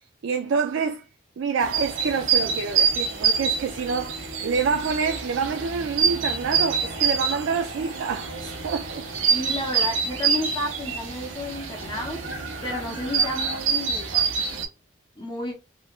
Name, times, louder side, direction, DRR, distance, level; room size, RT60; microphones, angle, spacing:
voice 1, 0.2-1.0 1.4-9.4, right 5 dB, 70° right, 0.3 m, -27 dB
sound 1, 1.6-14.7, right 6 dB, 90° right, 0.7 m, -26 dB
voice 2, 9.3-12.2 12.6-14.2 15.2-15.6, left 1 dB, 20° left, 0.6 m, -32 dB
3.0 x 2.3 x 2.3 m
head